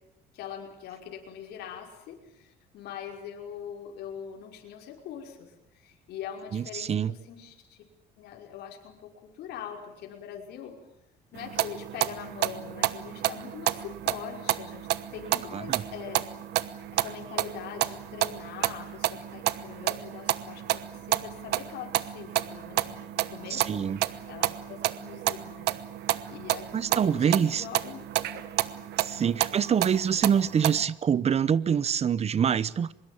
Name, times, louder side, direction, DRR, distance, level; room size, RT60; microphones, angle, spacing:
voice 1, 0.3-7.8 8.2-10.8 11.3-16.3 16.9-25.7 26.3-28.0 28.3-28.6 29.2-29.3, left 8 dB, 75° left, 5.6 m, -42 dB
voice 2, 6.5-7.1 15.5-15.8 23.5-24.0 26.7-27.6 29.0-32.9, right 7 dB, 40° right, 1.0 m, -25 dB
sound 1, 11.4-30.8, right 14 dB, 75° right, 1.1 m, -31 dB
24.0 x 22.0 x 8.9 m
cardioid pair, 110°, 17 cm